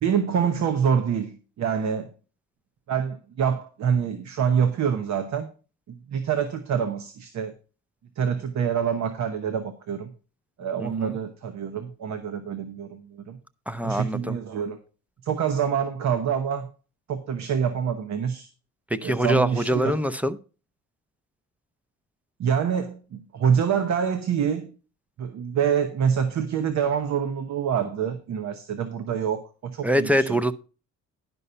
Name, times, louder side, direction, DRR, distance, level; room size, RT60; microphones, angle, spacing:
voice 1, 0.0-2.1 2.9-5.5 5.9-7.5 8.2-10.1 10.6-13.4 13.8-14.8 15.2-16.7 17.1-18.5 19.0-20.0 22.4-24.7 25.2-30.4, right 7 dB, 65° right, 1.1 m, -26 dB
voice 2, 10.8-11.2 13.7-14.4 18.9-20.4 29.8-30.5, equal, 5° right, 0.6 m, -24 dB
11.0 x 5.5 x 5.6 m
cardioid pair, 90°, 30 cm